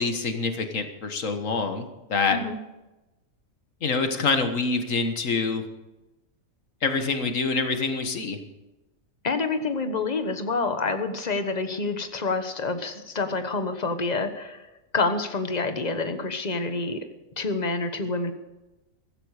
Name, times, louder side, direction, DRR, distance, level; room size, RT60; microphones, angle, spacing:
voice 1, 0.0-2.4 3.8-5.6 6.8-8.4, left 4 dB, 70° left, 7 dB, 1.8 m, -26 dB
voice 2, 9.2-14.6 14.9-17.0 17.4-18.3, left 3 dB, 35° left, 8 dB, 1.3 m, -27 dB
15.5 x 14.5 x 4.9 m, 1.0 s
omnidirectional pair, 1.4 m